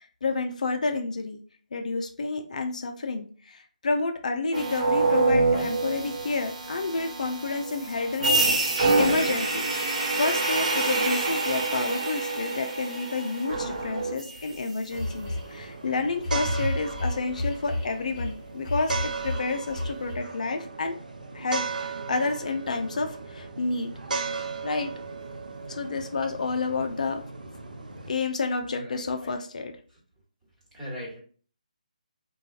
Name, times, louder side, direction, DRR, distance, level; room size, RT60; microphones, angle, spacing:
voice 1, 0.2-1.4 1.7-8.6 9.0-9.8 10.1-20.9 21.3-23.9 24.6-24.9 25.7-27.2 28.1-29.7, left 3 dB, 60° left, 4 dB, 0.5 m, -30 dB
sound 1, 4.5-14.6, right 3 dB, 60° right, 1.1 m, -26 dB
sound 2, 14.3-14.4 15.0-15.5 16.2-18.3 18.7-20.2, left 1 dB, 30° left, 0.8 m, -30 dB
sound 3, 14.9-28.1, right 4 dB, 80° right, 0.6 m, -36 dB
voice 2, 28.7-29.3 29.9-30.0 30.7-31.2, equal, 10° right, -7 dB, 1.4 m, -41 dB
3.9 x 2.3 x 2.4 m, 0.43 s
figure-of-eight pair, 155°, 4 cm